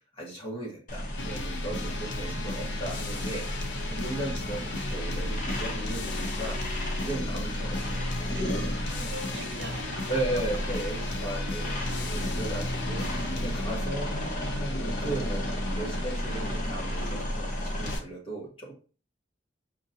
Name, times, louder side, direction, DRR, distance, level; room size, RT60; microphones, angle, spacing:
voice 1, 0.1-6.6 7.0-8.0 10.1-14.1 14.5-15.5 15.7-18.7, right 2 dB, 30° left, -3 dB, 1.5 m, -36 dB
sound 1, 0.9-18.0, equal, 45° left, 0.9 m, -33 dB
sound 2, 1.2-18.0, left 3 dB, 70° left, 0.6 m, -37 dB
voice 2, 1.5-2.1 8.3-10.4 11.5-11.6 11.9-12.0 12.5-12.6 13.6-14.0, right 2 dB, 70° right, 5 dB, 0.8 m, -45 dB
5.1 x 2.7 x 2.7 m, 0.36 s
head